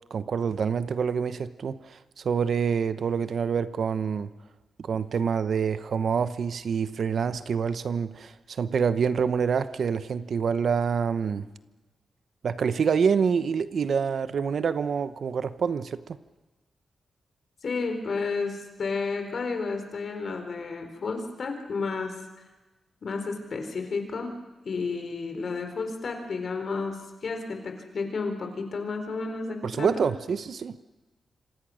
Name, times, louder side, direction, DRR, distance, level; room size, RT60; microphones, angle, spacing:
voice 1, 0.1-4.3 4.8-11.5 12.4-16.2 29.6-30.8, right 6 dB, 60° right, 0.9 m, -26 dB
voice 2, 17.6-22.1 23.0-24.3 24.6-30.0, left 4 dB, 55° left, 4.0 m, -31 dB
26.5 x 26.5 x 6.4 m
wide cardioid pair, 135°, 0 cm